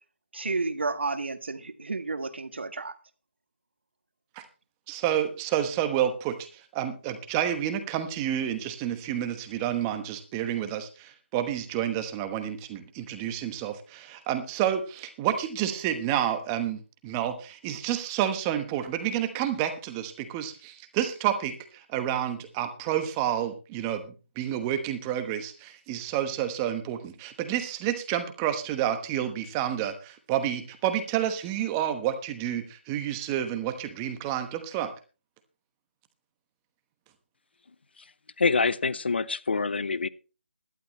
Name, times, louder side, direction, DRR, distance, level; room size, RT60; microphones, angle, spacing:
voice 1, 0.3-2.9, right 3 dB, 70° right, 1.7 m, -31 dB
voice 2, 4.9-34.9, right 10 dB, 15° right, 1.2 m, -29 dB
voice 3, 38.4-40.1, left 4 dB, 60° left, 0.8 m, -25 dB
17.0 x 12.0 x 3.1 m
figure-of-eight pair, 165°, 6 cm